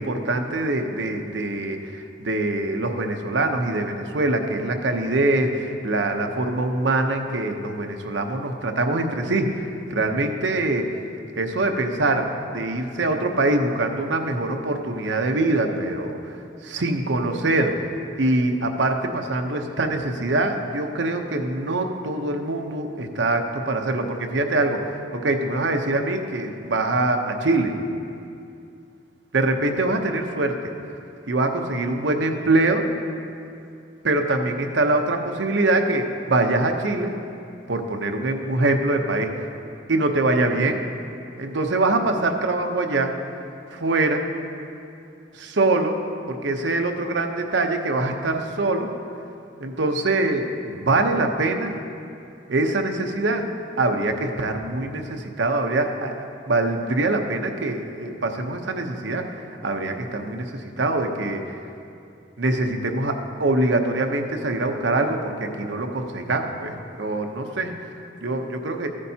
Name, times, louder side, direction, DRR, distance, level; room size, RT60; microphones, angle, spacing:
voice 1, 0.0-10.9 11.4-12.2 12.5-16.4 16.6-17.7 18.2-27.7 29.3-30.6 31.3-32.8 34.0-37.1 37.7-39.5 39.9-40.9 41.4-43.1 43.7-44.2 45.3-46.0 46.3-48.9 49.6-51.7 52.5-53.5 53.8-59.2 59.6-61.6 62.4-67.7 68.2-68.9, right 2 dB, 70° right, 5 dB, 0.8 m, -24 dB
14.5 x 9.9 x 2.8 m, 2.5 s
head